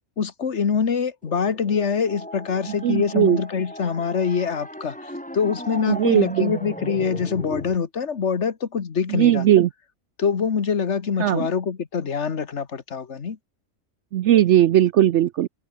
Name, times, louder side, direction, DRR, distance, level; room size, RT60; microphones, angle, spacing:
voice 1, 0.2-9.5 10.2-13.4, left 6 dB, 55° left, 1.7 m, -24 dB
sound 1, 1.2-7.8, equal, 5° left, 5.0 m, -37 dB
voice 2, 2.8-3.4 5.9-6.5 9.1-9.7 11.2-11.5 14.1-15.5, right 12 dB, 65° right, 0.8 m, -18 dB
omnidirectional pair, 1.5 m